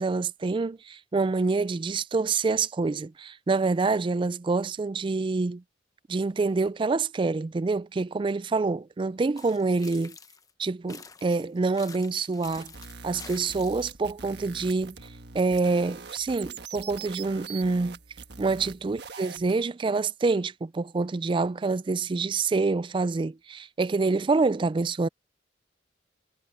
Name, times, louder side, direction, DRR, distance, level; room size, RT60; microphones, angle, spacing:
voice 1, 0.0-5.6 6.1-10.1 10.6-12.7 13.0-15.0 15.3-18.0 18.4-25.1, right 3 dB, 25° right, 0.3 m, -26 dB
sound 1, 9.4-10.5 10.9-13.9, left 5 dB, 20° left, 0.9 m, -48 dB
sound 2, 12.4-19.5, right 5 dB, 65° right, 1.5 m, -43 dB
head